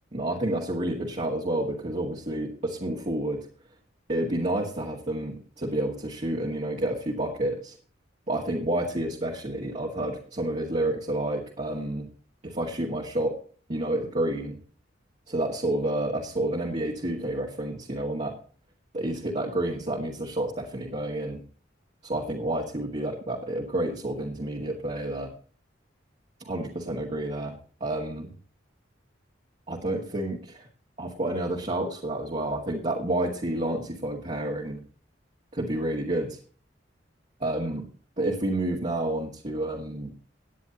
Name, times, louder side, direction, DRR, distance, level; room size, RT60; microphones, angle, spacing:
voice 1, 0.1-3.5 4.1-7.8 8.3-12.1 12.4-13.4 13.7-14.6 15.3-18.4 18.9-21.4 22.0-25.3 26.4-27.6 27.8-28.3 29.7-30.7 31.0-34.8 35.5-36.4 37.4-37.8 38.2-40.1, right 1 dB, 40° right, -3 dB, 2.0 m, -29 dB
18.0 x 9.7 x 2.9 m, 0.41 s
head